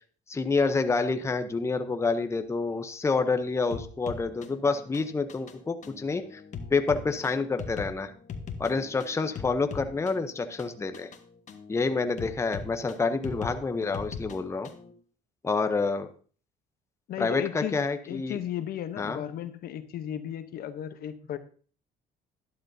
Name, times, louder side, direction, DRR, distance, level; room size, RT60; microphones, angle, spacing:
voice 1, 0.3-6.4 6.7-8.1 8.6-11.1 11.7-14.7 15.4-16.1 17.2-18.4 19.0-19.2, left 4 dB, 15° left, 8 dB, 0.7 m, -28 dB
sound 1, 3.7-14.9, left 5 dB, 45° left, 1.3 m, -41 dB
voice 2, 17.1-21.4, left 11 dB, 65° left, 11 dB, 0.9 m, -35 dB
11.5 x 11.5 x 2.7 m, 0.41 s
cardioid pair, 110°, 17 cm